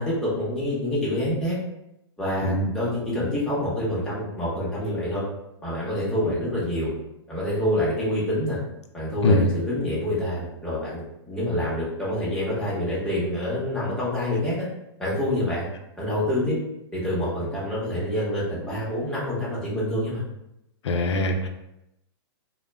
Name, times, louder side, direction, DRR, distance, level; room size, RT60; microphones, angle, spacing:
voice 1, 0.0-1.6 2.2-5.2 5.6-6.9 7.3-8.6 8.9-14.7 15.0-15.7 16.0-16.6 16.9-20.2, left 1 dB, 5° left, -8 dB, 0.9 m, -27 dB
voice 2, 20.8-21.5, left 1 dB, 90° left, 5 dB, 0.4 m, -22 dB
2.1 x 2.1 x 3.3 m, 0.85 s
hypercardioid pair, 140°, 14 cm